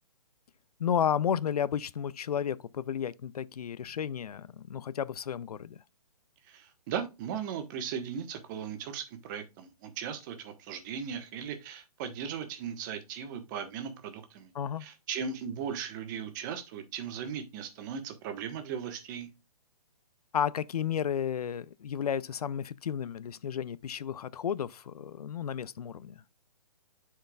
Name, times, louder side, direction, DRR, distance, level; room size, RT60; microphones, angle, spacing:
voice 1, 0.8-5.8 14.5-14.9 20.3-26.2, left 8 dB, 70° left, 0.5 m, -32 dB
voice 2, 6.5-14.5 14.8-19.3, right 7 dB, 30° right, 1.3 m, -37 dB
10.0 x 4.6 x 2.3 m
hypercardioid pair, 150°, 20 cm